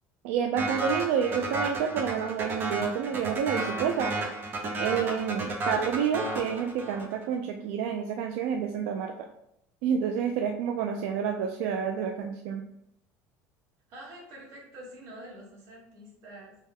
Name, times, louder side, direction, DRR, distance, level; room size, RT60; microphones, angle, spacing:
voice 1, 0.2-4.1 4.8-9.3 9.8-12.6, right 7 dB, 85° right, 3 dB, 0.4 m, -29 dB
sound 1, 0.6-7.2, right 2 dB, 35° right, 0.7 m, -32 dB
voice 2, 13.9-16.6, right 1 dB, 55° right, -3 dB, 1.4 m, -46 dB
3.4 x 3.2 x 3.4 m, 0.79 s
cardioid pair, 155°, 7 cm